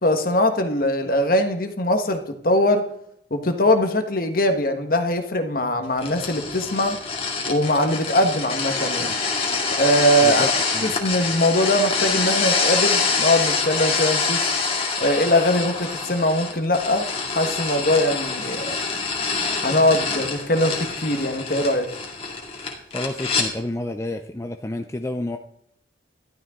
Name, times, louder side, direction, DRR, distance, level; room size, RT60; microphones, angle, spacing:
voice 1, 0.0-2.9 3.3-7.0 7.5-9.1 9.8-10.5 10.8-14.5 15.0-17.1 17.3-18.7 19.6-21.9, left 1 dB, 50° left, 7 dB, 1.4 m, -21 dB
sound 1, 6.0-23.5, left 4 dB, 30° left, 2.2 m, -25 dB
voice 2, 10.2-10.9 22.9-25.4, left 1 dB, 15° left, 6 dB, 0.5 m, -30 dB
12.5 x 12.5 x 3.7 m, 0.70 s
head